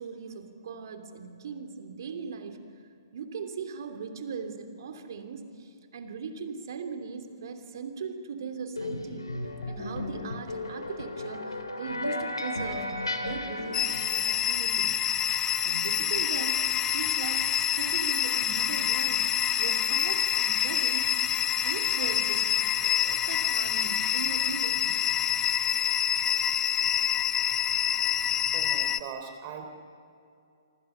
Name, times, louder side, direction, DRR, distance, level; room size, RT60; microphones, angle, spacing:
voice 1, 0.0-2.7 3.1-9.3 9.7-14.9 15.6-21.1 21.6-25.0, right 5 dB, 60° right, 6 dB, 2.9 m, -39 dB
sound 1, 8.8-14.3, left 2 dB, 90° left, 2.9 m, -34 dB
sound 2, 13.7-29.0, left 10 dB, 20° left, 1.0 m, -27 dB
voice 2, 28.5-29.7, right 7 dB, 35° right, 6 dB, 3.7 m, -40 dB
27.5 x 24.5 x 5.8 m, 2.5 s
figure-of-eight pair, 125°, 2 cm